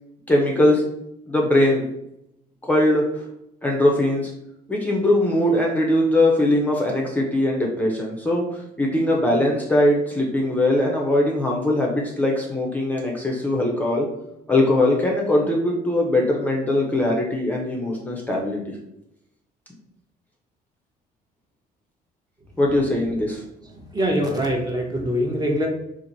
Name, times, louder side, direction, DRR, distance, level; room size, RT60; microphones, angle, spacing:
voice 1, 0.3-0.8 1.3-1.9 2.7-3.2 3.6-4.3 4.7-14.1 14.5-18.6 22.6-23.4, left 1 dB, 10° left, -1 dB, 0.6 m, -21 dB
voice 2, 23.6-25.7, equal, 25° right, 1 dB, 0.8 m, -24 dB
2.9 x 2.5 x 3.9 m, 0.79 s
cardioid pair, 110°, 17 cm